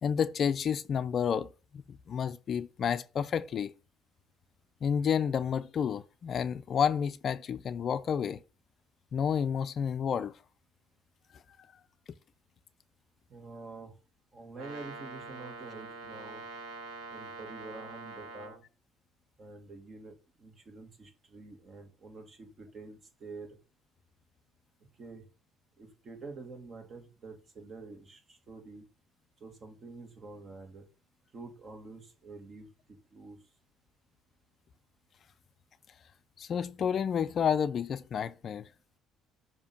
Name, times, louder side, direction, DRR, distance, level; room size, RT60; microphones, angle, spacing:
voice 1, 0.0-3.7 4.8-8.4 9.1-10.3 36.4-38.7, left 7 dB, 45° left, 0.4 m, -30 dB
voice 2, 13.3-13.9 14.3-16.4 17.1-18.6 19.4-20.1 20.4-23.6 25.0-25.2 25.8-28.9 29.4-30.8 31.3-32.7 33.1-33.4, right 3 dB, 40° right, 1.8 m, -47 dB
Brass instrument, 14.5-18.6, right 3 dB, 85° right, 1.5 m, -44 dB
7.0 x 2.8 x 5.3 m
cardioid pair, 100°, 0 cm